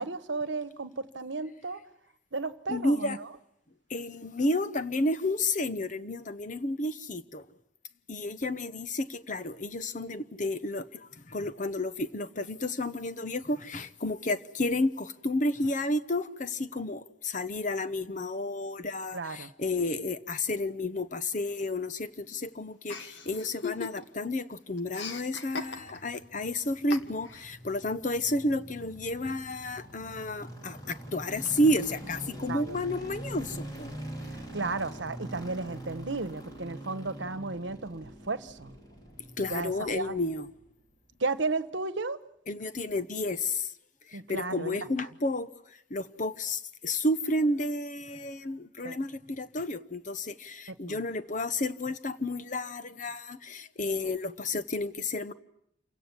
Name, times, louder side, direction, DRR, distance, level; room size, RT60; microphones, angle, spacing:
voice 1, 0.0-1.8 2.3-3.2 19.1-19.5 32.5-32.8 34.3-38.7 39.5-40.1 41.2-42.2 44.1-44.8 48.8-49.0 50.7-51.0, right 3 dB, 70° right, 1.2 m, -34 dB
voice 2, 2.7-3.2 3.9-7.4 8.1-10.9 11.3-33.9 39.4-40.5 42.5-43.7 44.3-45.5 45.9-55.3, left 1 dB, 40° left, 1.0 m, -31 dB
Chuckle chortle, 22.9-24.3 24.5-26.2 26.9-27.5, left 5 dB, 70° left, 1.8 m, -38 dB
sound 1, 25.5-40.7 40.9-41.0, right 1 dB, 20° left, 4.8 m, -44 dB
28.0 x 17.0 x 9.9 m
head